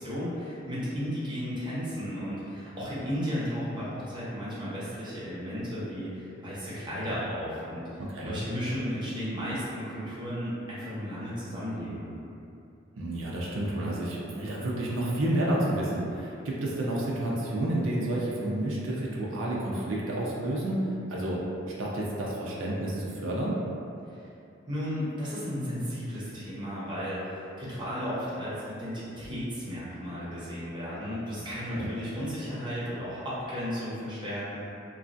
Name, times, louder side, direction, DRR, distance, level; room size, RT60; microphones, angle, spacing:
voice 1, 0.0-7.8 8.3-12.1 24.7-34.6, equal, 25° right, -10 dB, 0.8 m, -34 dB
voice 2, 13.0-21.4 21.8-23.6 31.7-31.9, right 1 dB, 80° right, -5 dB, 0.5 m, -30 dB
3.1 x 2.3 x 2.5 m, 2.7 s
head